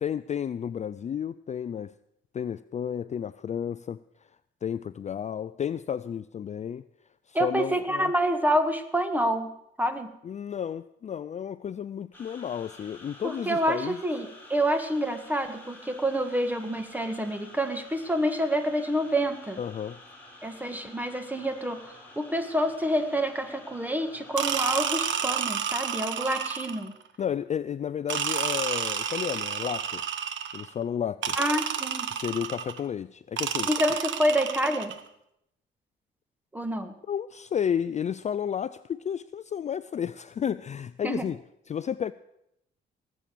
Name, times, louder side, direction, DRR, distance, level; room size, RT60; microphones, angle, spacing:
voice 1, 0.0-1.9 2.3-4.0 4.6-6.8 7.3-8.1 10.2-14.0 19.6-20.0 27.2-30.0 30.5-31.4 32.1-33.7 37.1-41.4 41.7-42.1, left 8 dB, 35° left, 0.4 m, -32 dB
voice 2, 7.3-9.5 9.8-10.1 13.2-19.6 20.4-26.9 31.4-32.1 33.7-34.9 36.5-36.9 41.0-41.2, equal, 10° right, 1.6 m, -27 dB
sound 1, 12.1-25.2, left 1 dB, 10° left, 4.1 m, -50 dB
sound 2, 24.4-26.9 28.1-30.7 31.2-32.8 33.4-35.0, right 8 dB, 70° right, 1.2 m, -30 dB
18.5 x 7.5 x 6.9 m
cardioid pair, 90°, 20 cm